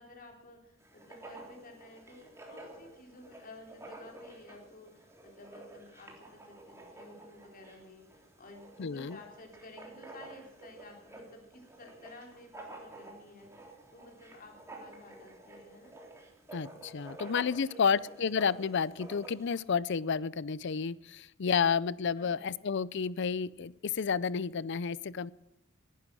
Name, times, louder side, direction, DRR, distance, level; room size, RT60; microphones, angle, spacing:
voice 1, 0.0-15.9 17.2-18.0 22.2-22.6, left 2 dB, 45° left, 2 dB, 3.9 m, -53 dB
Writing, 0.8-19.6, right 2 dB, 15° right, 3.4 m, -51 dB
voice 2, 8.8-9.2 16.5-25.3, left 6 dB, 60° left, 20 dB, 0.5 m, -31 dB
19.0 x 11.5 x 6.3 m, 0.89 s
head